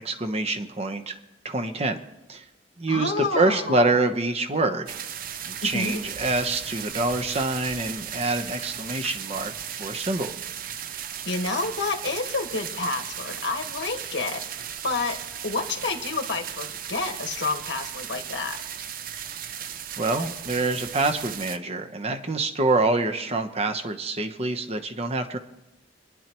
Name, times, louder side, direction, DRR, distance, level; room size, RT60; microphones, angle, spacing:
voice 1, 0.0-1.2 1.4-2.0 2.3-2.4 2.8-5.0 5.4-9.5 9.8-10.3 20.0-25.4, right 2 dB, 35° right, 6 dB, 1.0 m, -26 dB
voice 2, 2.9-3.9 5.6-6.0 11.2-14.4 14.8-15.2 15.4-18.6, left 3 dB, 80° left, 4 dB, 1.6 m, -29 dB
sound 1, 4.9-21.6, right 9 dB, 50° right, 0.5 m, -36 dB
29.5 x 10.0 x 3.0 m, 0.99 s
head